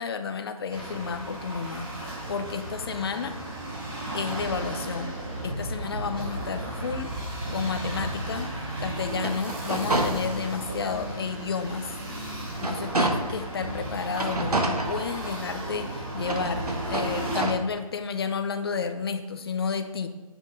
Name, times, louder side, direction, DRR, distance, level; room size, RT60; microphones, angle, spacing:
voice 1, 0.0-3.4 4.1-5.2 5.4-8.5 8.8-11.9 12.6-20.1, left 5 dB, 40° left, 8 dB, 0.7 m, -31 dB
sound 1, 0.7-17.4, right 1 dB, 35° right, 2.8 m, -35 dB
sound 2, 9.1-10.7 11.2-11.3 11.8-13.5 14.1-15.6 16.2-17.5, right 2 dB, 85° right, 1.4 m, -29 dB
6.9 x 6.0 x 5.2 m, 1.3 s
figure-of-eight pair, 155°, 19 cm